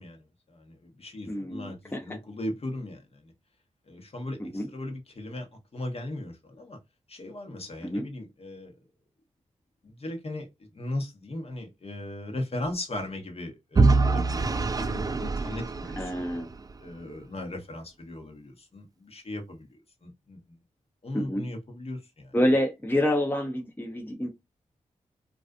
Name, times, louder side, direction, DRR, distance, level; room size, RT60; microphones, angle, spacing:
voice 1, 0.0-3.3 3.9-6.8 7.1-8.8 9.8-16.2 16.8-20.6 21.0-22.3, left 1 dB, 50° left, 1.0 m, -38 dB
voice 2, 1.3-2.2 4.4-4.7 7.8-8.1 16.0-16.5 21.1-21.5 22.3-24.3, left 1 dB, 15° left, 0.6 m, -28 dB
Vehicle / Engine, 13.8-16.8, right 3 dB, 30° right, 0.3 m, -24 dB
2.4 x 2.3 x 2.3 m
cardioid pair, 45°, 13 cm